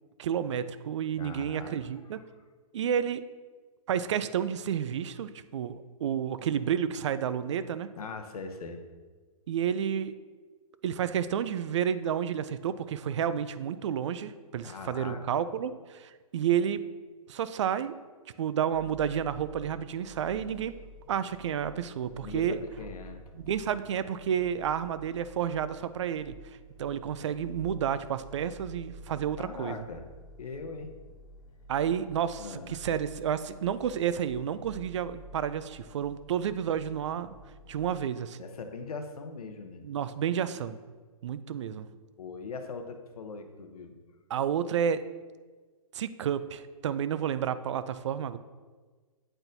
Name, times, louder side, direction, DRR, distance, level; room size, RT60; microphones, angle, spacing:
voice 1, 0.2-2.2 2.7-3.2 3.9-7.9 9.5-10.1 10.8-16.8 17.3-17.9 18.4-20.7 21.1-22.6 23.3-29.8 31.7-37.3 37.7-38.4 39.8-40.8 41.2-41.9 44.3-45.0 45.9-48.4, right 8 dB, 55° right, 14 dB, 0.4 m, -30 dB
voice 2, 1.2-1.8 8.0-8.8 14.6-15.2 22.2-23.2 29.4-30.0 30.4-30.9 32.4-32.8 38.4-39.8 42.2-44.0, left 4 dB, 80° left, 6 dB, 0.8 m, -40 dB
sound 1, 18.7-38.0, equal, 10° left, 1.3 m, -51 dB
8.8 x 4.3 x 2.6 m, 1.4 s
hypercardioid pair, 155°, 19 cm